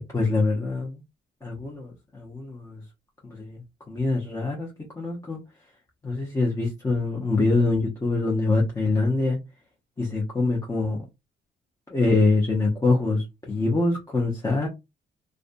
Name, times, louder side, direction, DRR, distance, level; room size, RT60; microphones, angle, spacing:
voice 1, 0.1-1.0 1.4-2.8 3.2-5.4 6.0-9.4 10.0-11.0 11.9-14.7, left 3 dB, 15° left, 0.7 m, -24 dB
2.5 x 2.2 x 2.5 m
cardioid pair, 90°, 20 cm